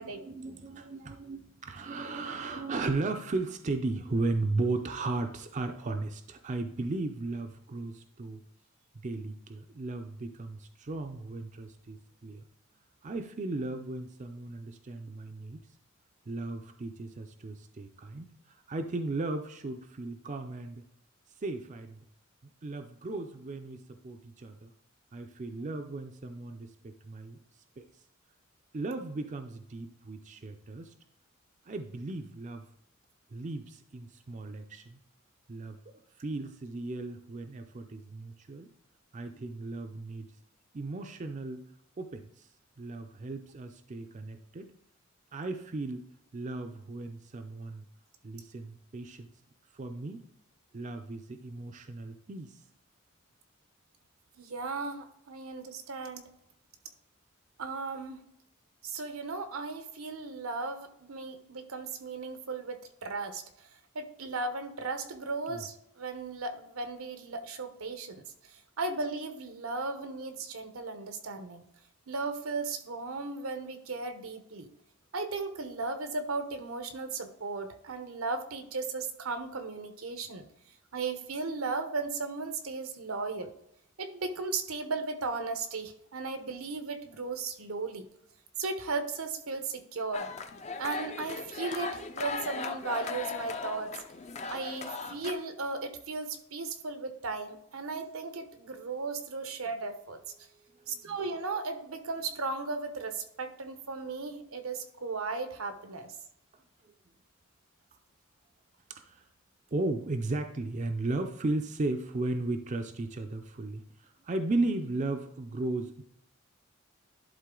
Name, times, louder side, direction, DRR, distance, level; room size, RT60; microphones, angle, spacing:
voice 1, 0.0-8.4 8.9-12.5 13.0-15.6 16.3-20.8 21.4-22.1 22.6-24.7 25.1-27.4 27.8-27.9 28.7-30.9 31.7-32.7 33.3-35.0 35.5-38.7 39.1-40.3 40.7-41.6 42.0-42.5 42.8-44.7 45.3-47.9 48.2-49.3 49.7-50.2 50.7-52.6 65.5-65.6 100.7-101.1 106.8-106.9 108.9-109.2 109.7-116.0, right 2 dB, 35° right, 6 dB, 0.5 m, -36 dB
voice 2, 54.4-56.3 57.6-58.2 58.8-63.7 63.9-71.7 72.1-74.7 75.1-80.5 80.9-83.5 84.0-88.1 88.6-90.3 90.8-94.0 94.5-100.2 100.9-106.1, right 3 dB, 85° right, 8 dB, 0.9 m, -36 dB
sound 1, 90.1-95.3, left 4 dB, 30° left, 0.5 m, -38 dB
11.0 x 3.8 x 3.8 m, 0.78 s
head